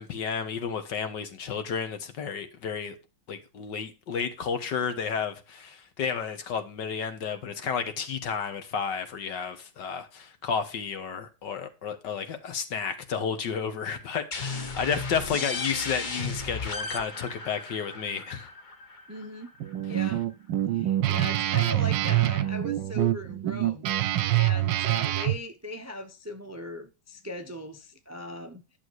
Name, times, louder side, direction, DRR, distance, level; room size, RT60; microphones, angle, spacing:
voice 1, 0.0-2.9 3.3-18.5, left 6 dB, 65° left, 1.9 m, -32 dB
sound 1, 14.3-19.8, left 4 dB, 35° left, 0.8 m, -35 dB
voice 2, 19.1-19.5 19.9-20.2 20.7-23.8 24.3-28.8, left 1 dB, 20° right, 0.4 m, -39 dB
Guitar, 19.6-25.4, right 14 dB, 75° right, 1.3 m, -25 dB
11.0 x 6.6 x 4.7 m
omnidirectional pair, 2.2 m